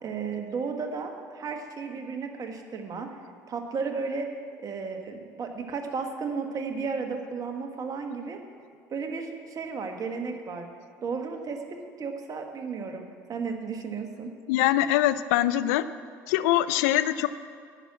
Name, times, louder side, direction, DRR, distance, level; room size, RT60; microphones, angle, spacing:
voice 1, 0.0-3.1 3.5-4.3 4.6-8.4 8.9-10.7 11.0-14.3, right 5 dB, 45° right, 4 dB, 1.5 m, -34 dB
voice 2, 14.5-15.9 16.3-17.3, left 13 dB, 75° left, 14 dB, 0.4 m, -23 dB
9.8 x 6.0 x 8.7 m, 2.1 s
hypercardioid pair, 70°, 9 cm